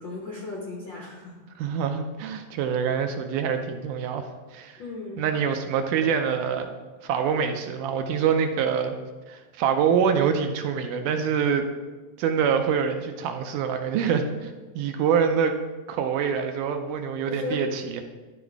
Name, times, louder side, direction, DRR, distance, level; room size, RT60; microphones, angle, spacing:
voice 1, 0.0-1.4 4.8-5.2 17.2-17.6, left 2 dB, 85° left, -2 dB, 1.0 m, -35 dB
voice 2, 1.6-4.3 4.5-4.8 5.2-6.7 7.0-9.0 9.3-11.6 12.2-15.6 15.9-18.0, right 7 dB, 80° right, 6 dB, 2.0 m, -25 dB
12.0 x 4.1 x 4.6 m, 1.3 s
omnidirectional pair, 3.9 m